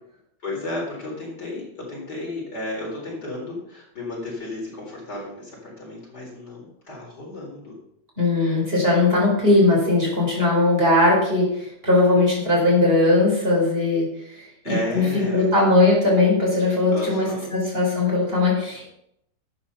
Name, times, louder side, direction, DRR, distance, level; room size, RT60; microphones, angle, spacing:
voice 1, 0.4-7.8 14.6-15.5 16.9-17.5, left 1 dB, 60° left, -3 dB, 4.7 m, -33 dB
voice 2, 8.2-14.1 14.3-18.9, left 2 dB, 30° right, -3 dB, 5.1 m, -19 dB
11.5 x 8.8 x 5.6 m, 0.76 s
omnidirectional pair, 2.0 m